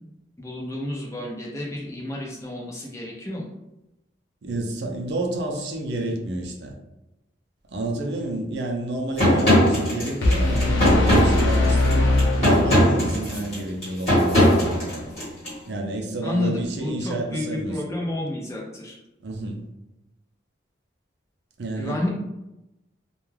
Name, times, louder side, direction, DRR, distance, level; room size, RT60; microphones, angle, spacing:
voice 1, 0.4-3.5 16.2-19.0 21.8-22.1, left 1 dB, 15° left, -3 dB, 0.5 m, -30 dB
voice 2, 4.4-6.7 7.7-15.1 15.7-17.8 19.2-19.6 21.6-22.0, right 2 dB, 65° right, 2 dB, 0.5 m, -30 dB
sound 1, 9.2-15.5, equal, 35° left, 1.3 m, -20 dB
sound 2, 10.2-13.2, left 2 dB, 80° left, 0.6 m, -21 dB
2.3 x 2.2 x 3.1 m, 0.95 s
head